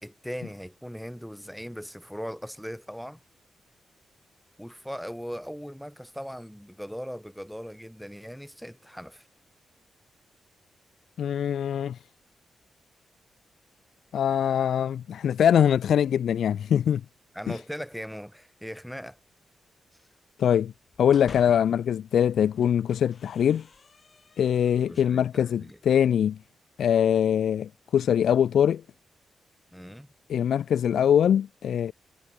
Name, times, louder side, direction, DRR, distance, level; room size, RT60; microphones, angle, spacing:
voice 1, 0.0-3.2 4.6-9.3 17.3-19.2 24.9-25.8 29.7-30.1, equal, ahead, 2.4 m, -39 dB
voice 2, 11.2-12.0 14.1-17.0 17.5-17.6 20.4-20.7 21.0-23.6 24.4-26.4 26.8-28.8 30.3-31.9, left 9 dB, 75° left, 0.6 m, -23 dB
sound 1, 20.8-21.9 22.4-25.2, left 5 dB, 35° left, 5.1 m, -50 dB
wide cardioid pair, 170°, 0 cm